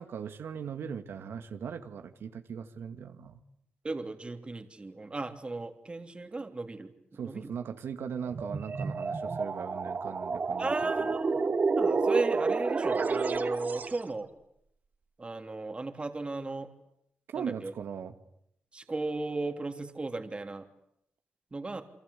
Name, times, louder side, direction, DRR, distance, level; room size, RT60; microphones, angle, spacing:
voice 1, 0.0-3.4 7.2-10.7 17.3-18.2, right 7 dB, 75° right, 7 dB, 2.1 m, -39 dB
voice 2, 3.8-6.9 7.2-7.5 10.6-11.4 11.7-14.3 15.2-16.7 17.3-17.7 18.7-20.6 21.5-21.8, right 3 dB, 30° right, 6 dB, 3.2 m, -35 dB
sound 1, 8.3-14.0, right 4 dB, 45° right, 2.4 m, -30 dB
29.5 x 23.0 x 8.5 m, 0.77 s
cardioid pair, 75°, 4 cm